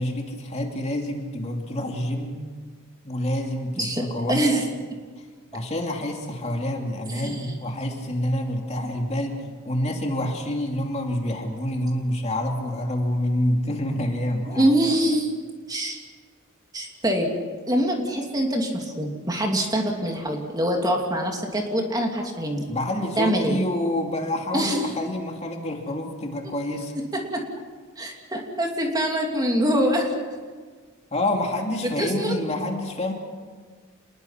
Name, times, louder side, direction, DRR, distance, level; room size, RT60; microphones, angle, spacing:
voice 1, 0.0-2.4 3.0-4.6 5.5-14.7 22.7-26.9 31.1-33.1, left 1 dB, 30° left, 2 dB, 2.7 m, -27 dB
voice 2, 3.8-4.7 7.1-7.5 14.5-15.3 15.7-16.0 16.7-17.3 17.7-22.7 23.2-23.6 24.5-24.8 26.4-26.5 27.1-27.4 28.0-30.1 31.8-32.3, right 1 dB, 20° right, 1 dB, 2.9 m, -24 dB
27.5 x 21.0 x 6.0 m, 1.5 s
head